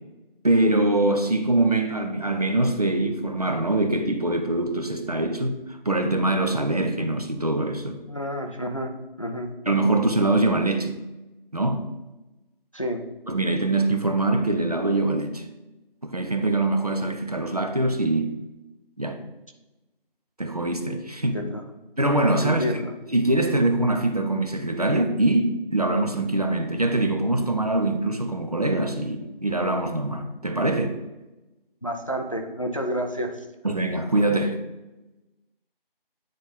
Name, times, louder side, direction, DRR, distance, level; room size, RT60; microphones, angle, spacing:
voice 1, 0.4-8.0 9.7-10.9 11.5-11.8 13.3-15.4 16.0-18.3 19.0-19.2 20.4-21.3 22.0-22.8 23.1-29.2 29.4-30.9 33.6-34.6, right 2 dB, 40° right, 0.6 m, -23 dB
voice 2, 8.1-9.6 12.7-13.0 21.3-21.6 22.4-22.9 31.8-33.4, equal, 35° left, 0.5 m, -29 dB
9.3 x 4.0 x 3.5 m
figure-of-eight pair, 175°, 29 cm